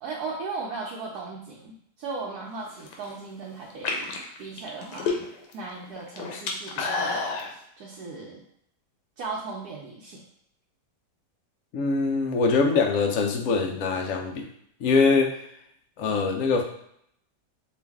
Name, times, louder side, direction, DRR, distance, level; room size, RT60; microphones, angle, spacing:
voice 1, 0.0-4.1 4.4-5.2 5.5-7.4 7.8-8.4 9.2-10.2, right 4 dB, 70° right, -3 dB, 1.1 m, -37 dB
sound 1, 2.7-3.1 3.7-5.5 5.8-7.5, left 4 dB, 85° left, 1.3 m, -30 dB
voice 2, 11.7-14.5 14.8-15.4 16.0-16.6, left 4 dB, 65° left, 2 dB, 0.9 m, -23 dB
4.6 x 2.5 x 3.5 m, 0.71 s
omnidirectional pair, 1.8 m